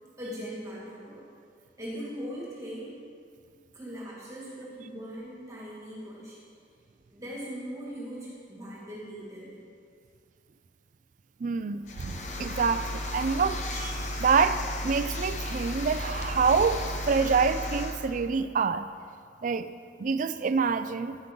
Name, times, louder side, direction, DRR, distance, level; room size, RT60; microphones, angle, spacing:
voice 1, 0.2-1.2 1.8-2.9 3.7-6.4 7.1-9.6, equal, 15° right, -7 dB, 2.1 m, -40 dB
voice 2, 11.4-14.6 14.8-18.9 19.4-19.7 20.0-21.2, right 5 dB, 45° right, 12 dB, 0.4 m, -26 dB
sound 1, 11.8-18.0, left 1 dB, 40° left, 0.9 m, -34 dB
11.0 x 9.6 x 3.8 m, 2.2 s
head